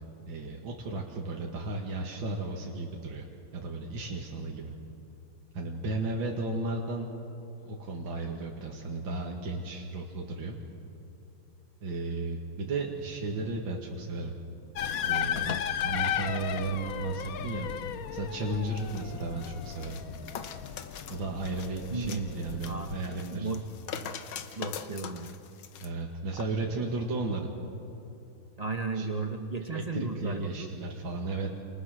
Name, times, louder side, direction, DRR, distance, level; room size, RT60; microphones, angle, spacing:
voice 1, 0.3-3.3 3.5-4.7 5.5-7.1 7.6-10.6 11.8-14.3 15.1-17.7 18.1-20.0 21.1-23.5 25.8-27.5 28.9-29.1 29.7-31.5, right 3 dB, 70° right, -1 dB, 2.7 m, -34 dB
sound 1, 14.8-23.0, left 9 dB, 60° left, 0.9 m, -35 dB
sound 2, 18.8-25.9 26.3-26.4, left 8 dB, 75° left, 1.9 m, -43 dB
voice 2, 23.3-23.6 24.5-25.3 28.6-30.7, right 3 dB, 25° right, 5 dB, 1.1 m, -34 dB
28.0 x 27.5 x 6.6 m, 2.7 s
omnidirectional pair, 2.2 m